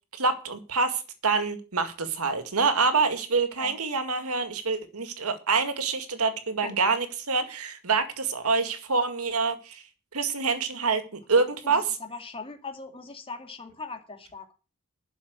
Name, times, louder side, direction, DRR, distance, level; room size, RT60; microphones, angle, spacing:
voice 1, 0.1-9.8 10.1-12.0, right 4 dB, 85° right, 9 dB, 2.0 m, -26 dB
voice 2, 11.6-14.5, left 4 dB, 25° left, 5 dB, 2.3 m, -40 dB
11.5 x 6.2 x 8.0 m, 0.34 s
head